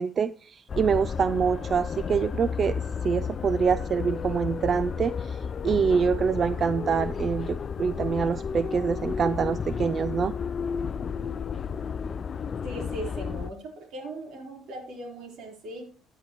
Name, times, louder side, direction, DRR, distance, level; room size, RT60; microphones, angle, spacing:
voice 1, 0.0-2.8 3.0-5.4 5.6-10.3, right 6 dB, 35° right, 15 dB, 0.4 m, -25 dB
sound 1, 0.7-13.5, left 6 dB, 35° left, 0.4 m, -32 dB
voice 2, 12.6-15.8, right 1 dB, 65° right, 2 dB, 3.9 m, -38 dB
14.0 x 10.0 x 3.0 m, 0.43 s
cardioid pair, 140°, 0 cm